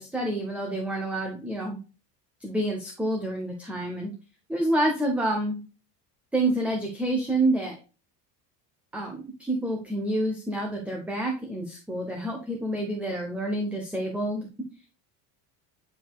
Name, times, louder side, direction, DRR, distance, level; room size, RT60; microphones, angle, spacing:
voice 1, 0.0-1.8 2.4-4.1 4.5-5.6 6.3-7.8 8.9-14.5, right 1 dB, 5° right, 1 dB, 0.9 m, -28 dB
9.4 x 5.1 x 2.3 m, 0.33 s
cardioid pair, 175°, 39 cm